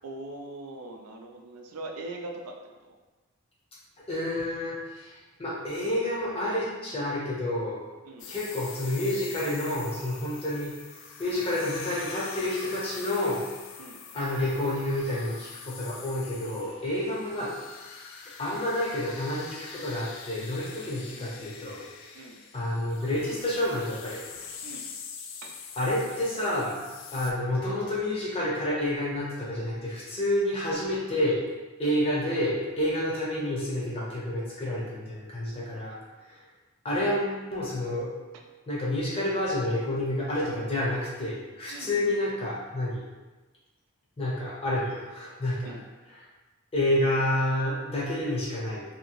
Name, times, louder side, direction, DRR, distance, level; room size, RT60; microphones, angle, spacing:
voice 1, 0.0-2.9 8.0-8.3 13.8-14.0 17.1-17.2 20.9-21.5 22.1-22.4 24.6-24.8 25.4-25.6 37.0-37.2 41.7-42.1 45.6-45.8, right 2 dB, 85° right, 3 dB, 0.4 m, -42 dB
voice 2, 4.0-7.8 8.3-13.4 14.1-17.5 18.4-22.2 22.5-24.3 25.8-31.5 31.8-36.5 36.8-38.1 38.7-43.0 44.2-45.7 46.7-48.9, left 1 dB, 25° left, -5 dB, 0.6 m, -29 dB
sound 1, 8.2-27.3, left 6 dB, 55° left, 0.3 m, -44 dB
2.8 x 2.7 x 2.9 m, 1.2 s
head